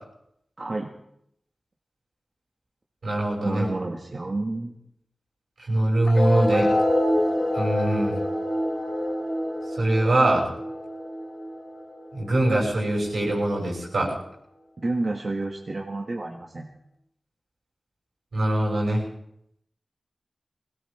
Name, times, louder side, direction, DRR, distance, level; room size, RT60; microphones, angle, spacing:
voice 1, 0.6-0.9 3.4-4.7 14.8-16.7, right 2 dB, 55° right, 0 dB, 1.5 m, -29 dB
voice 2, 3.0-3.6 5.7-6.7 7.5-8.1 9.8-10.5 12.1-14.1 18.3-19.0, right 1 dB, 85° right, -4 dB, 5.9 m, -22 dB
sound 1, 6.1-13.0, left 1 dB, 50° left, 3.1 m, -27 dB
20.5 x 17.0 x 3.4 m, 0.75 s
cardioid pair, 40°, 0 cm